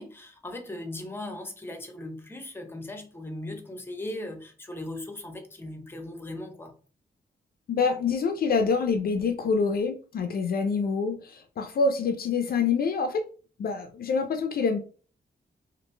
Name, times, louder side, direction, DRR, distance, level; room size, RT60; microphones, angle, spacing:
voice 1, 0.0-6.7, left 1 dB, 15° left, 5 dB, 0.7 m, -38 dB
voice 2, 7.7-13.2 13.6-14.8, left 5 dB, 60° left, 7 dB, 0.4 m, -26 dB
3.0 x 2.5 x 3.2 m, 0.40 s
wide cardioid pair, 120°, 17 cm